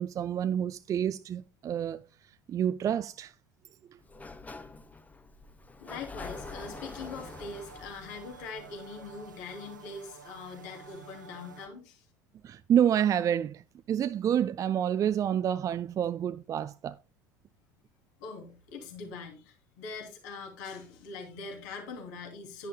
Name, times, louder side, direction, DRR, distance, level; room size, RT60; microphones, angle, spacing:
voice 1, 0.0-2.0 2.5-3.3 12.4-13.6 13.9-16.9, right 9 dB, 35° right, 0.5 m, -28 dB
Sliding door, 4.0-9.7, left 3 dB, 15° left, 0.9 m, -46 dB
voice 2, 5.8-12.0 18.2-22.7, left 4 dB, 65° left, 2.8 m, -42 dB
sound 1, 6.2-11.7, right 6 dB, 90° right, 1.2 m, -51 dB
10.5 x 10.5 x 2.2 m
figure-of-eight pair, 70°, 10 cm